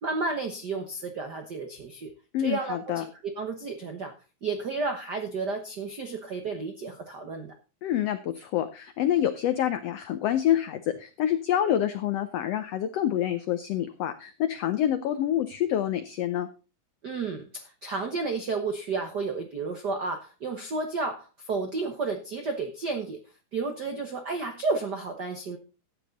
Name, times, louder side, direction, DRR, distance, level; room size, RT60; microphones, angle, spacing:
voice 1, 0.0-2.1 2.4-3.1 3.4-4.1 4.4-7.5 17.0-23.2 23.5-25.6, right 3 dB, 70° right, 5 dB, 0.9 m, -32 dB
voice 2, 2.3-3.0 7.8-16.5, left 11 dB, 85° left, 10 dB, 1.4 m, -27 dB
13.0 x 8.8 x 4.0 m, 0.33 s
omnidirectional pair, 3.7 m